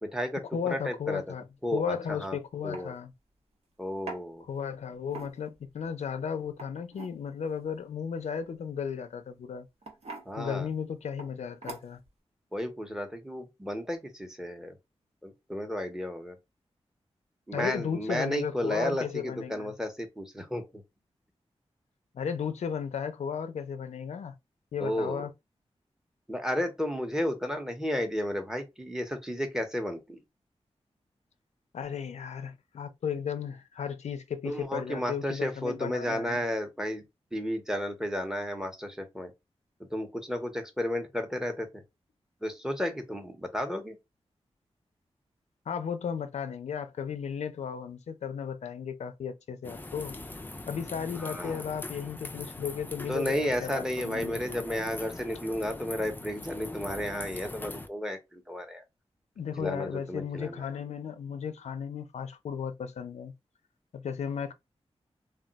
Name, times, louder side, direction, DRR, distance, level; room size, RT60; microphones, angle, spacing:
voice 1, 0.0-0.4 0.7-1.2 1.6-1.8 2.1-2.4 2.6-2.9 3.8-4.4 10.3-10.7 12.5-14.7 15.2-16.4 17.5-20.8 24.8-25.2 26.3-30.2 34.4-37.0 37.3-39.3 39.9-41.7 42.4-44.0 51.2-51.6 53.1-58.8 59.6-60.6, equal, 5° right, 0.7 m, -33 dB
voice 2, 0.5-1.5 1.7-3.1 4.4-9.7 10.4-12.0 17.5-19.7 22.1-24.4 24.7-25.3 31.7-36.4 45.7-50.2 50.7-53.3 53.6-54.6 59.4-63.3 63.9-64.5, left 7 dB, 80° left, 0.4 m, -35 dB
sound 1, 2.0-2.2 2.7-2.9 4.1-4.2 5.0-5.6 6.5-7.2 8.8-9.1 9.8-10.3 11.2-11.3 11.6-12.1, right 3 dB, 70° right, 0.9 m, -42 dB
sound 2, 49.6-57.9, left 2 dB, 15° left, 0.3 m, -41 dB
2.2 x 2.2 x 3.8 m
wide cardioid pair, 140°, 11 cm